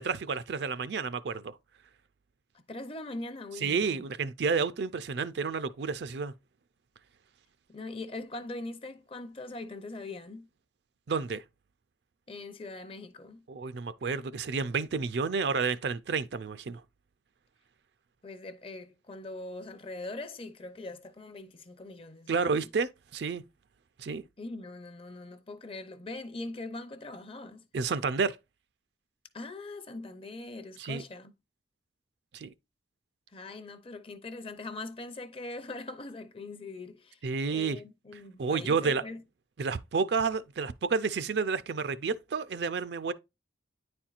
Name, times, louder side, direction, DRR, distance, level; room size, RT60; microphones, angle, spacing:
voice 1, 0.0-1.6 3.6-6.3 11.1-11.4 13.5-16.8 22.3-23.4 24.0-24.2 27.7-28.4 30.8-31.0 32.3-32.5 37.2-37.8 38.4-39.0 39.6-43.1, right 5 dB, 60° right, 0.4 m, -30 dB
voice 2, 2.7-4.1 7.7-10.5 12.3-13.5 18.2-22.7 24.4-27.6 29.3-31.3 33.3-37.2 37.5-39.2, left 2 dB, 30° left, 0.6 m, -42 dB
9.6 x 4.4 x 2.4 m
head